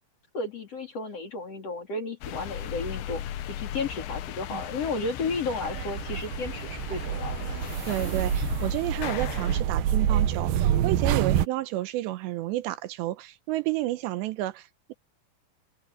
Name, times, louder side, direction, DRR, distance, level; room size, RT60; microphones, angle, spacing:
voice 1, 0.3-7.3, left 3 dB, 35° left, 3.9 m, -33 dB
sound 1, 2.2-9.6, left 11 dB, 80° left, 3.6 m, -37 dB
sound 2, 5.6-11.5, right 10 dB, 70° right, 2.4 m, -27 dB
voice 2, 7.9-14.9, right 16 dB, 85° right, 3.0 m, -31 dB
omnidirectional pair, 5.2 m